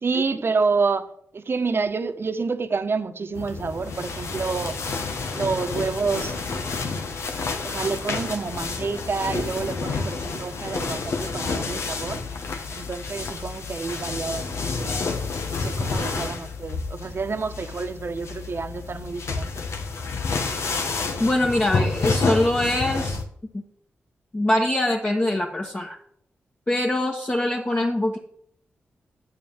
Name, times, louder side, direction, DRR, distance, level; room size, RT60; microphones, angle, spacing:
voice 1, 0.0-4.8 5.3-6.4 7.6-12.2 12.7-15.2 15.5-19.7, right 4 dB, 55° right, 1.2 m, -28 dB
sound 1, 3.3-23.2, left 4 dB, 75° left, 1.5 m, -29 dB
voice 2, 21.2-23.2 23.5-23.6 24.3-26.0 26.7-28.2, left 1 dB, 35° left, 2.0 m, -23 dB
8.8 x 7.7 x 7.4 m
supercardioid pair, 40°, 5 cm